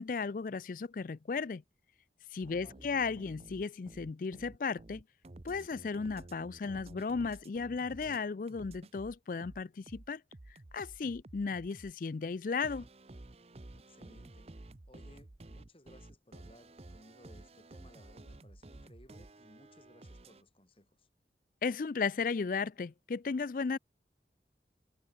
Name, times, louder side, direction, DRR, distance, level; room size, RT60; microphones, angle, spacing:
voice 1, 0.0-1.6 2.3-5.0 5.4-10.2 10.7-12.8 21.6-23.8, left 4 dB, 50° left, 0.4 m, -35 dB
voice 2, 2.4-2.9 13.7-14.5 14.9-21.1, left 1 dB, 30° left, 5.8 m, -60 dB
sound 1, 2.4-8.2 8.5-11.9 12.6-20.4, right 2 dB, 35° right, 0.7 m, -52 dB
head